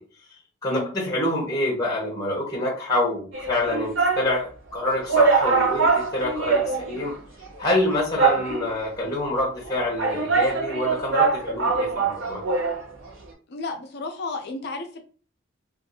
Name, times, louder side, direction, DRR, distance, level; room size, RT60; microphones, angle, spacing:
voice 1, 0.6-7.1 7.6-12.4, left 1 dB, 15° left, 0.9 m, -26 dB
sound 1, 3.3-4.3 4.8-4.9 5.1-7.1 7.4-7.5 8.2-8.9 9.7-12.8 13.1-13.2, right 4 dB, 60° right, 0.7 m, -23 dB
voice 2, 13.5-15.0, left 3 dB, 50° left, 0.5 m, -32 dB
2.5 x 2.4 x 2.7 m
head